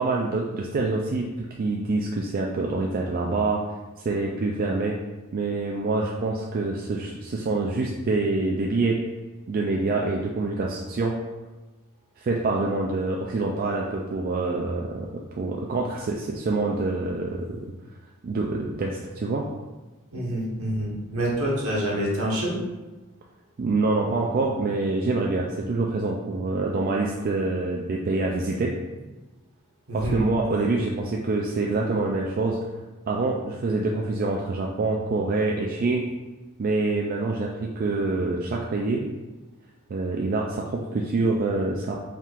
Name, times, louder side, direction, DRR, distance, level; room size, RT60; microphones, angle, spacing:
voice 1, 0.0-3.6 4.1-5.0 5.3-9.0 9.5-11.2 12.2-15.1 15.4-17.6 18.2-19.5 23.6-28.7 29.9-32.6 33.1-36.0 36.6-39.1 39.9-42.0, right 3 dB, 40° right, -2 dB, 0.3 m, -26 dB
voice 2, 20.1-22.6 29.9-30.7, right 1 dB, 70° right, -4 dB, 1.2 m, -27 dB
4.4 x 3.6 x 2.4 m, 1.1 s
head